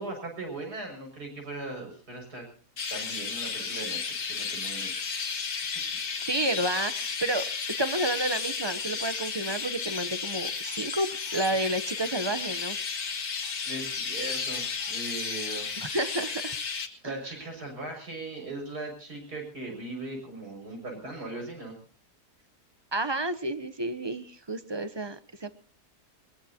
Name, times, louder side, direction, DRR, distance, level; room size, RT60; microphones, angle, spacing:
voice 1, 0.0-2.4 2.9-5.0 13.7-15.7 17.0-21.8, right 2 dB, 85° right, 2 dB, 6.9 m, -39 dB
Chirp tweet, 2.8-16.9, left 5 dB, 70° left, 2.1 m, -33 dB
voice 2, 6.3-7.5 7.8-12.8 15.8-16.6 17.0-17.2 22.9-25.5, right 1 dB, 25° right, 12 dB, 0.6 m, -30 dB
21.5 x 21.5 x 2.9 m, 0.41 s
omnidirectional pair, 1.6 m